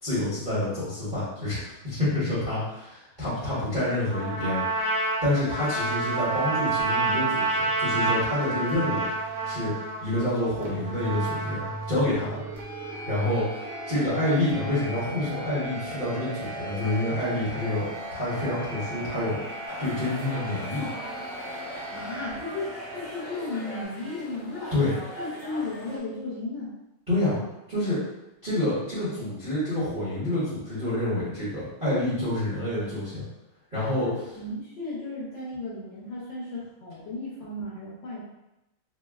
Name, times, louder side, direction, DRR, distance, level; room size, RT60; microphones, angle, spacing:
voice 1, 0.0-4.6 5.2-9.1 9.4-11.6 11.9-12.4 13.1-20.9 24.7-24.9 27.1-27.4 27.7-28.0 28.4-33.2 33.7-34.1, left 1 dB, 35° right, -12 dB, 0.8 m, -28 dB
voice 2, 3.5-4.0 21.9-24.7 25.2-26.7 34.0-38.2, left 2 dB, 65° left, -6 dB, 1.3 m, -35 dB
Trumpet, 4.1-12.2, right 3 dB, 60° right, 1.4 m, -28 dB
sound 1, 5.8-23.8, right 1 dB, 90° right, 0.8 m, -38 dB
sound 2, 19.7-26.0, equal, 40° left, 1.1 m, -41 dB
4.4 x 2.1 x 2.3 m, 0.92 s
omnidirectional pair, 2.4 m